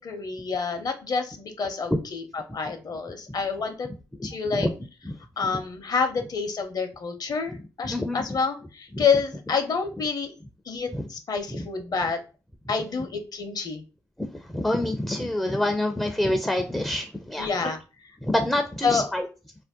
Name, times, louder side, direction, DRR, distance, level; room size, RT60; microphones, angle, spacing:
voice 1, 0.0-3.9 4.2-4.7 5.4-10.4 10.7-12.2 12.7-13.8 17.4-17.8 18.8-19.1, left 5 dB, 50° left, 7 dB, 0.7 m, -28 dB
voice 2, 4.2-4.7 5.0-5.2 7.8-8.4 8.9-9.0 10.9-11.1 11.5-11.6 14.2-17.5 18.2-19.3, left 1 dB, 5° left, 5 dB, 0.4 m, -27 dB
2.5 x 2.1 x 3.6 m, 0.34 s
supercardioid pair, 55°, 9 cm